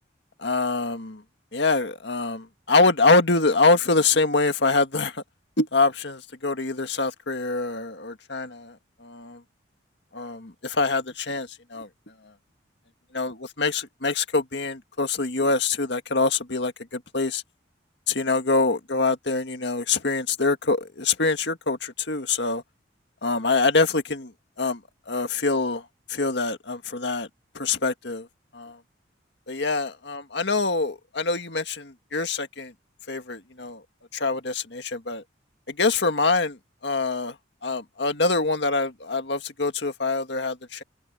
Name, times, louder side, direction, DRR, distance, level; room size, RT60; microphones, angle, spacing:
voice 1, 0.4-1.2 1.5-5.2 5.6-8.7 9.0-9.4 10.1-11.9 13.1-17.4 18.1-22.6 23.2-24.3 24.6-24.8 25.1-25.8 26.1-27.3 27.6-28.2 28.5-28.8 29.5-32.7 33.1-33.8 34.1-35.2 35.7-36.6 36.8-37.3 37.6-40.8, left 3 dB, 65° left, 1.9 m, -24 dB
head